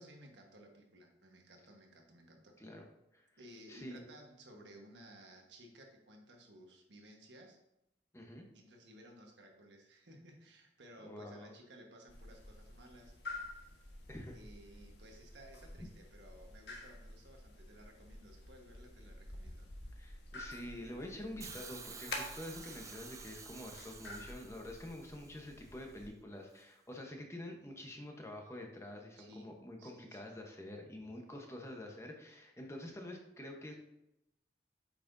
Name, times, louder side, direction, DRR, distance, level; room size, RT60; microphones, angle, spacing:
voice 1, 0.0-2.5 3.4-7.6 8.5-13.8 14.3-19.7 29.2-29.5 29.8-30.3, right 1 dB, 90° right, 1 dB, 1.4 m, -57 dB
voice 2, 2.6-2.9 3.1-3.2 3.7-4.0 8.1-8.5 11.0-11.5 14.1-14.4 20.0-33.8, left 1 dB, 15° left, 1 dB, 1.0 m, -47 dB
sound 1, 12.1-26.1, left 2 dB, 70° left, 1.3 m, -50 dB
Hiss, 21.4-25.5 26.6-26.7, right 5 dB, 20° right, 0.4 m, -51 dB
8.4 x 5.9 x 2.7 m, 0.85 s
head